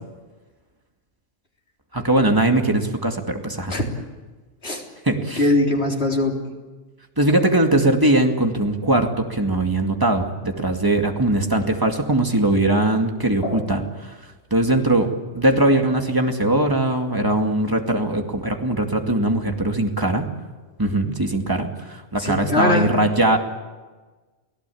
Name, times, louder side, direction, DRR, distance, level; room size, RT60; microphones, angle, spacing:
voice 1, 1.9-3.7 5.1-5.4 7.2-13.8 14.5-15.1 15.3-20.3 20.8-23.4, right 1 dB, 15° right, 3 dB, 2.3 m, -20 dB
voice 2, 5.4-6.4 13.4-13.6 22.2-22.9, left 2 dB, 55° left, 0 dB, 3.9 m, -21 dB
30.0 x 17.5 x 8.6 m, 1.3 s
omnidirectional pair, 1.3 m